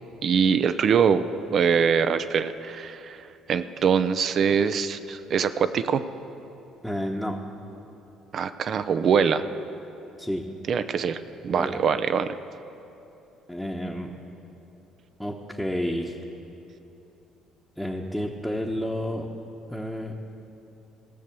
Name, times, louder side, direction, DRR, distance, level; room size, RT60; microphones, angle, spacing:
voice 1, 0.2-3.2 3.5-6.0 8.3-9.4 10.7-12.3, right 6 dB, 55° right, 11 dB, 0.5 m, -23 dB
voice 2, 6.8-7.4 10.2-10.4 11.5-11.8 13.5-14.1 15.2-16.1 17.8-19.3 19.7-20.1, equal, 5° left, -2 dB, 1.0 m, -30 dB
16.5 x 6.6 x 6.9 m, 2.9 s
hypercardioid pair, 65°, 0 cm